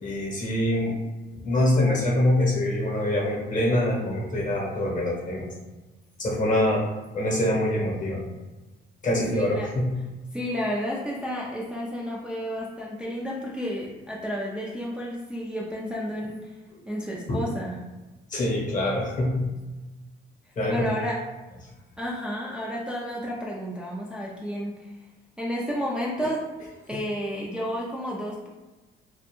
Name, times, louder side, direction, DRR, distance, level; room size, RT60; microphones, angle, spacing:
voice 1, 0.0-1.0 1.4-5.5 6.2-6.9 7.1-8.2 9.0-9.9 17.3-17.4 18.3-19.5 20.6-20.8, left 1 dB, 40° left, -2 dB, 0.9 m, -24 dB
voice 2, 9.3-9.7 10.3-16.4 16.9-17.8 20.7-21.2 22.0-24.9 25.4-26.4 26.9-28.5, equal, 5° right, -5 dB, 0.4 m, -31 dB
2.3 x 2.1 x 2.9 m, 1.2 s
cardioid pair, 90°, 20 cm